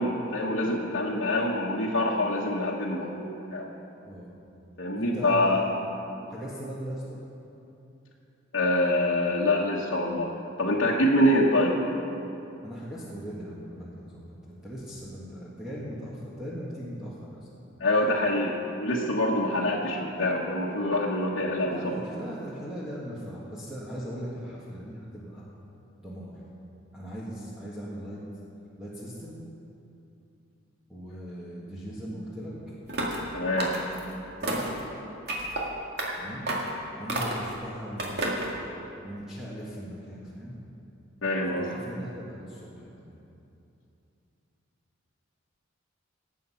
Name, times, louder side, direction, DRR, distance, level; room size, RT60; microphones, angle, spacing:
voice 1, 0.0-3.7 4.8-5.6 8.5-10.3 10.6-11.8 17.8-22.0 33.3-33.7 41.2-41.7, left 1 dB, 70° left, -6 dB, 1.3 m, -25 dB
voice 2, 5.0-5.6 6.3-7.2 12.6-17.5 21.6-25.5 26.0-26.4 26.9-28.2 28.8-29.4 30.9-32.6 33.9-34.0 34.4-34.9 36.1-36.5 36.9-38.2 39.0-40.6 41.4-43.2, equal, 5° right, -8 dB, 1.7 m, -39 dB
sound 1, 32.9-33.2 33.6-34.0 34.4-34.8 35.3-35.6 36.0-36.1 36.5-36.7 37.1-37.5 38.0-38.5, right 2 dB, 55° right, 2.0 m, -30 dB
19.0 x 8.3 x 5.7 m, 2.8 s
head